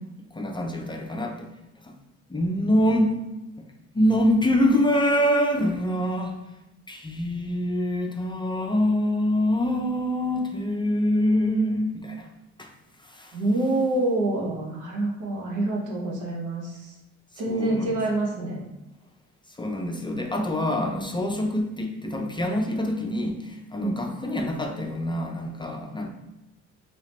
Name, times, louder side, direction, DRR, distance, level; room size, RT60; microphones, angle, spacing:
voice 1, 0.3-1.5 1.8-2.0 2.3-3.2 3.6-3.7 3.9-6.4 6.9-12.3 12.6-12.7 13.0-13.4 17.5-18.0 19.5-26.1, left 1 dB, 15° left, 2 dB, 0.4 m, -25 dB
voice 2, 13.3-16.9 17.4-18.7 20.6-21.2 22.8-22.9 23.8-24.0, right 2 dB, 85° right, -2 dB, 1.0 m, -27 dB
2.9 x 2.9 x 3.3 m, 0.97 s
cardioid pair, 90°, 30 cm